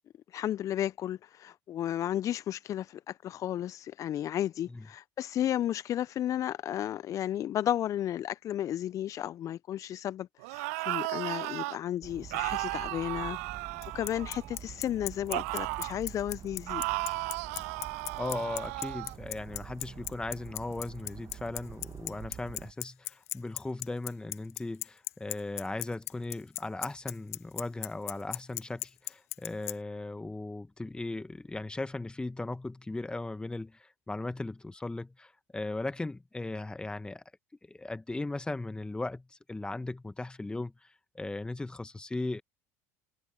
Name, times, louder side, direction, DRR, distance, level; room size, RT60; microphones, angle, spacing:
voice 1, 0.3-13.4 13.9-16.8, left 11 dB, 45° left, 0.7 m, -33 dB
sound 1, 10.4-11.8 12.3-14.6 15.3-16.0 16.7-19.1, right 25 dB, 70° right, 0.3 m, -35 dB
sound 2, 12.0-22.7, right 9 dB, 40° right, 1.7 m, -47 dB
Bicycle, 13.8-29.7, left 17 dB, 75° left, 1.2 m, -36 dB
voice 2, 18.2-37.2 37.7-42.4, left 2 dB, 10° left, 1.8 m, -37 dB
hypercardioid pair, 70°, 8 cm